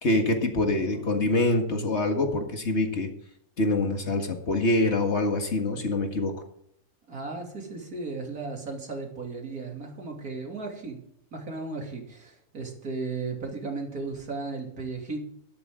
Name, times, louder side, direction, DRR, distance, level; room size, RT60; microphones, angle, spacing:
voice 1, 0.0-3.1 3.6-6.3, left 2 dB, 50° left, 4 dB, 2.0 m, -25 dB
voice 2, 0.6-1.3 7.1-11.0 11.3-15.2, right 3 dB, 80° right, 1 dB, 3.4 m, -35 dB
13.0 x 12.0 x 3.8 m, 0.70 s
omnidirectional pair, 1.5 m